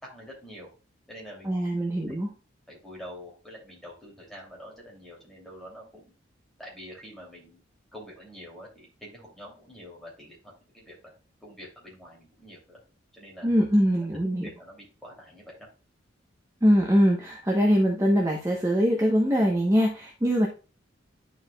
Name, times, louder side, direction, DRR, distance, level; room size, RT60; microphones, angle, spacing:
voice 1, 0.0-0.7 1.1-1.7 2.1-2.2 2.7-6.1 6.6-7.6 7.9-11.1 11.4-12.8 13.1-13.5 14.3-15.7, equal, ahead, -3 dB, 2.8 m, -46 dB
voice 2, 1.4-2.3 13.4-14.5 16.6-20.5, equal, 15° right, -1 dB, 0.9 m, -22 dB
11.0 x 4.7 x 2.3 m, 0.33 s
head